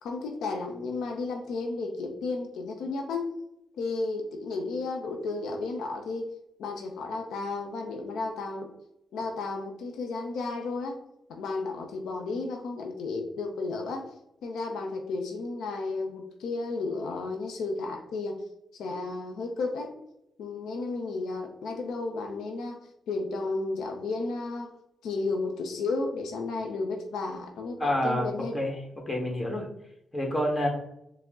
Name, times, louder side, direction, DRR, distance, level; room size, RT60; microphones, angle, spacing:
voice 1, 0.0-3.4 3.8-6.3 6.6-8.7 9.1-11.0 11.3-14.1 14.4-18.4 18.8-19.9 20.4-22.8 23.1-24.7 25.0-28.5, left 3 dB, 90° left, 3 dB, 0.5 m, -33 dB
voice 2, 27.8-28.7 29.1-29.6 30.1-30.7, left 1 dB, 20° left, 0 dB, 1.3 m, -28 dB
4.7 x 2.1 x 3.6 m, 0.80 s
cardioid pair, 70°, 0 cm